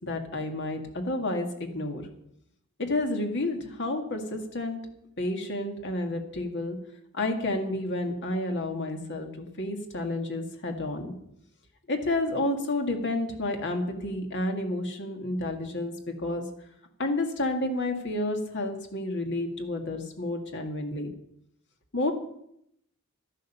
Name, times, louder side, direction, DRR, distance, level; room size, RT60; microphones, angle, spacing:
voice 1, 0.0-2.0 2.8-4.8 5.2-6.8 7.1-11.1 11.9-16.5 17.0-21.1 21.9-22.1, left 2 dB, 55° left, 4 dB, 2.1 m, -30 dB
12.0 x 11.5 x 5.6 m, 0.74 s
head